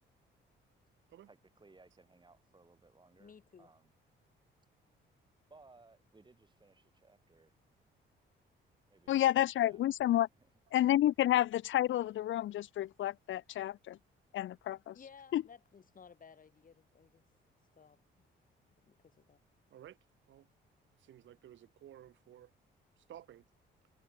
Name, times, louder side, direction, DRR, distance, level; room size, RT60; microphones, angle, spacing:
voice 1, 1.3-3.3 3.6-3.9 5.5-7.5 8.9-9.8, right 3 dB, 25° right, 7.3 m, -62 dB
voice 2, 3.2-3.7 14.9-17.2 17.7-18.0 18.8-19.4, left 6 dB, 45° left, 7.4 m, -57 dB
voice 3, 9.1-10.3 10.7-14.0 14.3-15.0 15.3-15.4, left 13 dB, 75° left, 1.9 m, -30 dB
voice 4, 21.0-22.5 23.0-23.4, right 11 dB, 70° right, 3.5 m, -54 dB
cardioid pair, 90°, 20 cm